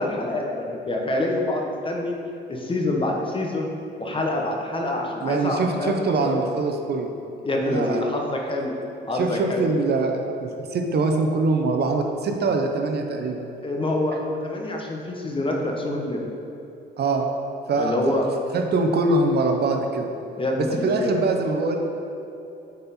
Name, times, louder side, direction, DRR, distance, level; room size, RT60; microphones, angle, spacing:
voice 1, 0.0-2.1 2.5-3.7 4.0-6.4 7.4-8.7 9.1-9.6 13.6-16.2 17.8-18.3 20.4-21.1, left 1 dB, 25° left, 0 dB, 1.0 m, -26 dB
voice 2, 5.2-7.1 7.5-8.1 9.1-13.5 17.0-17.3 17.7-18.2 18.5-20.1 20.6-21.8, right 3 dB, 55° right, 3 dB, 0.7 m, -23 dB
7.3 x 4.3 x 4.2 m, 2.8 s
cardioid pair, 90°, 20 cm